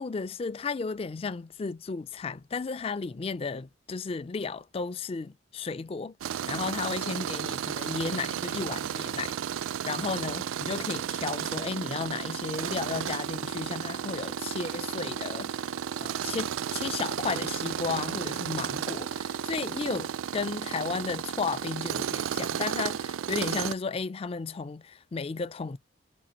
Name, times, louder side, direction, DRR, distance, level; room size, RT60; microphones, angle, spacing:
voice 1, 0.0-6.1 6.5-9.3 9.9-25.8, left 4 dB, 30° left, 0.3 m, -34 dB
Tools, 6.2-23.7, right 8 dB, 85° right, 0.3 m, -33 dB
6.1 x 2.5 x 2.8 m
head